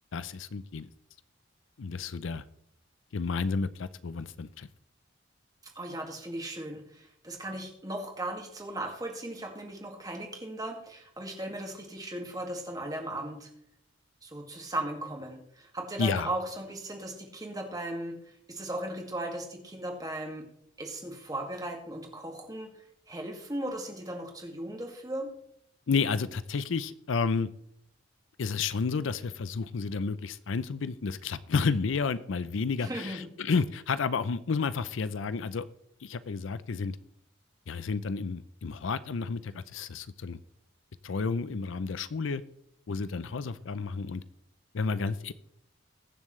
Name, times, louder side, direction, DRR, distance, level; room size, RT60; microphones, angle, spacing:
voice 1, 0.1-0.9 1.8-2.4 3.1-4.7 16.0-16.3 25.9-27.5 28.4-35.6 36.0-37.0 37.7-40.4 41.0-42.4 42.9-44.2 44.7-45.3, left 4 dB, 70° left, 15 dB, 0.5 m, -31 dB
voice 2, 5.8-13.5 14.2-18.2 18.5-20.4 20.8-22.7 23.1-25.3 32.8-33.3, right 1 dB, 20° right, 2 dB, 2.0 m, -37 dB
21.5 x 7.2 x 3.2 m, 0.73 s
head